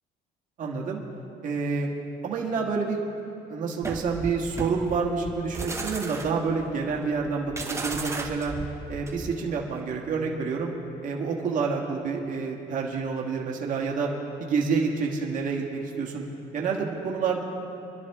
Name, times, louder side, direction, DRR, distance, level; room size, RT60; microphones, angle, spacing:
voice 1, 0.6-1.0 1.4-1.9 2.2-3.0 3.5-8.5 8.9-10.7 11.0-14.1 14.4-16.2 16.5-17.4, right 5 dB, 50° right, -2 dB, 1.7 m, -28 dB
sound 1, 3.8-9.5, right 3 dB, 15° right, 1.2 m, -35 dB
26.0 x 11.5 x 3.6 m, 2.9 s
cardioid pair, 110°, 17 cm